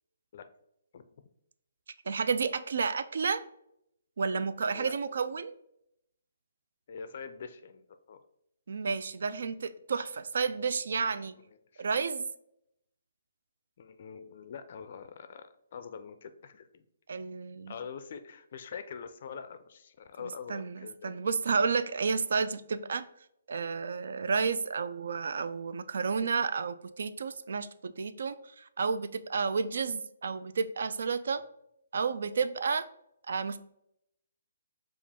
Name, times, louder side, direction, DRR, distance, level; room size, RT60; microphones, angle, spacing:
voice 1, 2.1-3.4 4.2-5.5 8.7-11.4 11.8-12.2 17.1-17.7 20.5-23.1 23.5-31.4 31.9-32.9 33.3-33.6, right 5 dB, 70° right, 13 dB, 0.3 m, -31 dB
voice 2, 6.9-8.2 11.4-11.9 13.8-16.8 17.7-21.2, left 6 dB, 50° left, 10 dB, 0.3 m, -44 dB
4.9 x 2.4 x 3.4 m, 0.78 s
hypercardioid pair, 155°, 0 cm